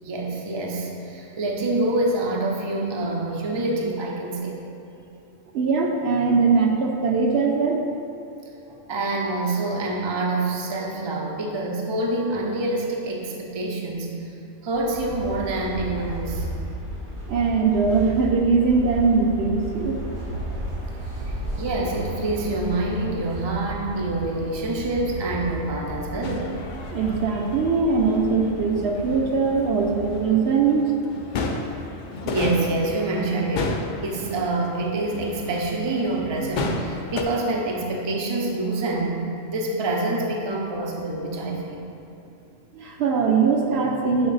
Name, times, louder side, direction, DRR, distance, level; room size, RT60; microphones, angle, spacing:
voice 1, 0.0-4.6 8.7-14.1 14.6-16.5 21.6-26.5 32.2-33.8 34.0-39.2 39.5-41.8, right 2 dB, 40° right, -1 dB, 0.4 m, -26 dB
voice 2, 5.5-7.8 17.3-20.0 26.9-30.9 42.7-44.3, right 4 dB, 65° right, 1 dB, 0.7 m, -21 dB
sound 1, 14.7-30.4, right 1 dB, 90° right, 2.1 m, -34 dB
sound 2, 26.2-37.2, left 3 dB, 75° left, 0.4 m, -33 dB
6.9 x 3.6 x 3.9 m, 2.7 s
omnidirectional pair, 1.3 m